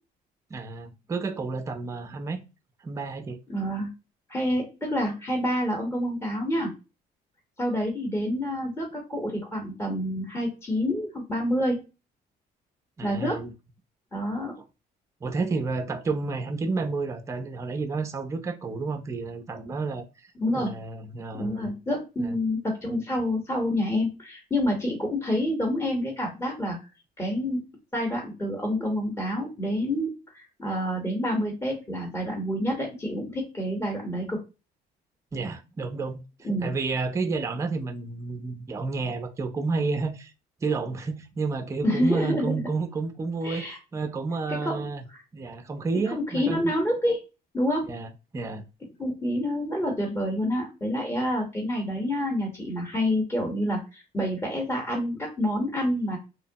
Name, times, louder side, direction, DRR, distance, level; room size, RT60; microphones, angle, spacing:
voice 1, 0.5-2.4 2.8-3.4 13.0-13.5 15.2-21.7 22.2-22.3 35.3-40.3 40.6-45.0 45.3-46.7 47.9-48.7, right 4 dB, 20° right, 0.4 m, -31 dB
voice 2, 3.5-3.9 4.3-6.7 7.6-11.8 13.0-13.4 14.1-14.5 20.4-20.7 21.3-26.8 27.2-27.6 27.9-34.4 36.4-36.7 41.8-42.7 43.4-43.8 44.5-44.8 45.1-45.2 46.1-47.2 47.5-47.9 49.0-56.2, equal, 15° left, 0.8 m, -28 dB
2.8 x 2.0 x 2.6 m
cardioid pair, 110°, 17 cm